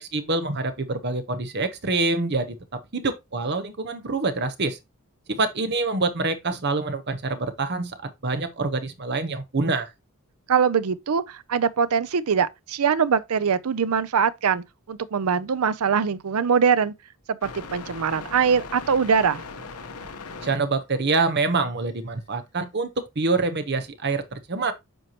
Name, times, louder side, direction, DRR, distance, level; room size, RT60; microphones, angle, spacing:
voice 1, 0.1-2.6 2.9-4.8 5.3-8.0 8.2-9.9 20.4-22.9 23.2-24.7, right 3 dB, 50° right, 0.9 m, -26 dB
voice 2, 10.5-16.9 17.3-19.4, right 6 dB, 75° right, 0.5 m, -22 dB
sound 1, 17.4-20.6, left 4 dB, 80° left, 1.0 m, -38 dB
7.8 x 4.6 x 2.9 m
head